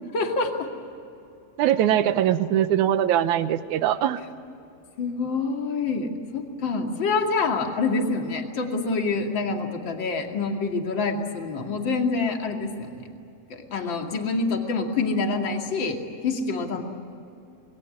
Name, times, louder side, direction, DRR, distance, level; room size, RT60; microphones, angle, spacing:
voice 1, 0.1-0.7 5.0-13.0 13.5-16.0 16.2-16.8, left 4 dB, 35° left, 2 dB, 2.6 m, -26 dB
voice 2, 1.6-4.2, right 11 dB, 75° right, 11 dB, 1.9 m, -22 dB
26.5 x 22.0 x 9.9 m, 2.7 s
omnidirectional pair, 4.4 m